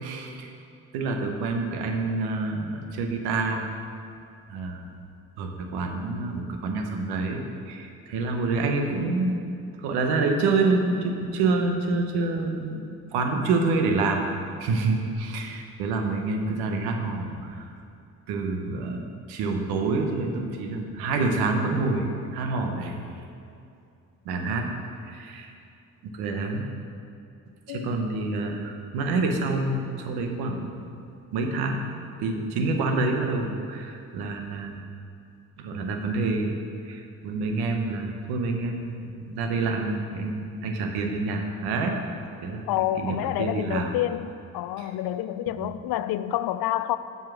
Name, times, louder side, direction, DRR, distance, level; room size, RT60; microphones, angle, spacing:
voice 1, 0.0-0.5 0.9-3.7 4.5-4.9 5.4-9.4 9.8-12.8 13.1-14.3 14.6-17.7 18.3-23.2 24.2-24.7 25.0-25.5 26.0-26.7 27.7-30.8 31.3-31.8 32.2-34.8 35.6-36.6 36.8-42.7 43.0-43.9 44.8-44.9 45.6-45.7, right 3 dB, 90° right, 3 dB, 0.9 m, -27 dB
voice 2, 42.7-44.3 44.5-47.0, left 13 dB, 70° left, 13 dB, 0.5 m, -28 dB
7.5 x 5.6 x 6.0 m, 2.6 s
supercardioid pair, 55°, 37 cm